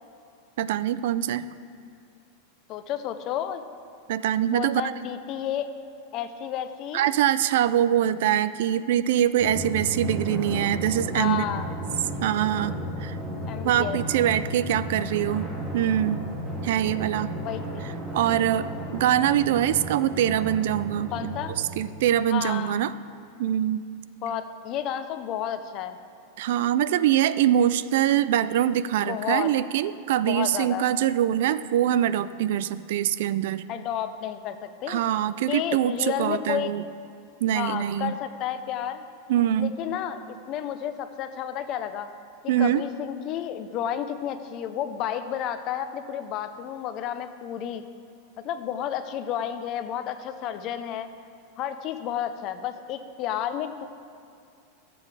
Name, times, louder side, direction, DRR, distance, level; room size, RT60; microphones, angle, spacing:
voice 1, 0.6-1.5 4.1-4.8 6.9-11.5 12.2-13.2 13.6-16.2 16.6-17.3 18.1-22.9 23.4-23.9 26.4-33.6 34.9-36.8 37.4-38.1 39.3-39.8 42.5-42.8, right 11 dB, 60° right, 15 dB, 0.3 m, -24 dB
voice 2, 2.7-3.6 4.5-5.7 6.1-7.1 11.1-11.7 13.5-14.0 17.4-17.8 21.1-21.6 22.3-22.8 24.2-26.0 29.0-29.5 30.3-30.8 33.7-35.0 35.5-36.7 37.5-39.0 39.6-42.1 42.6-47.8 48.4-51.1 51.6-53.9, left 10 dB, 35° left, 10 dB, 0.5 m, -31 dB
Drum, 9.4-22.5, equal, 5° right, 1.3 m, -34 dB
12.5 x 7.6 x 4.8 m, 2.4 s
supercardioid pair, 165°, 0 cm